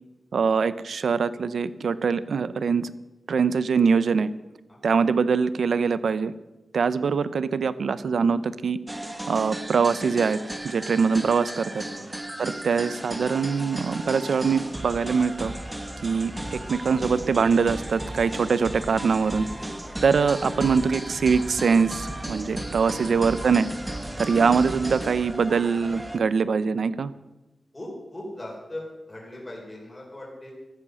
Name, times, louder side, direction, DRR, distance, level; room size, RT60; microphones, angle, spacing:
voice 1, 0.3-2.9 3.3-4.3 4.8-6.3 6.7-8.8 9.3-10.4 10.6-11.8 12.4-15.5 16.0-19.5 20.0-23.7 24.2-27.1, right 5 dB, 75° right, 14 dB, 0.7 m, -23 dB
sound 1, 8.9-26.2, right 1 dB, 10° right, 1.3 m, -35 dB
voice 2, 22.9-23.2 27.7-30.5, left 1 dB, 15° left, -3 dB, 4.2 m, -39 dB
14.5 x 14.0 x 6.5 m, 1.0 s
wide cardioid pair, 170°, 0 cm